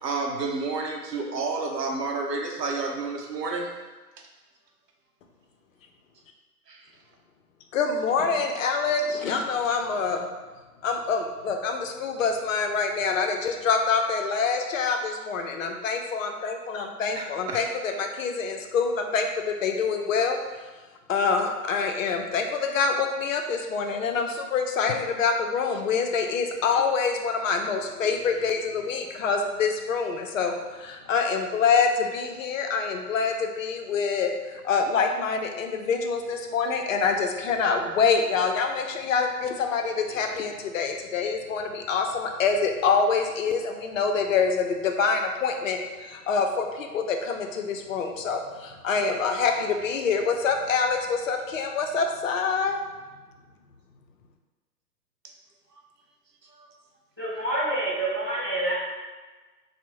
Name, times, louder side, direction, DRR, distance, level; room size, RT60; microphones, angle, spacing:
voice 1, 0.0-3.7 6.7-6.8 17.2-17.6, right 3 dB, 90° right, 1 dB, 0.6 m, -30 dB
voice 2, 7.7-10.3 10.8-20.4 21.1-52.8, left 5 dB, 55° left, 4 dB, 0.5 m, -26 dB
voice 3, 57.2-58.7, right 1 dB, 20° right, -11 dB, 0.3 m, -27 dB
3.4 x 2.1 x 3.0 m, 1.3 s
figure-of-eight pair, 120°, 48 cm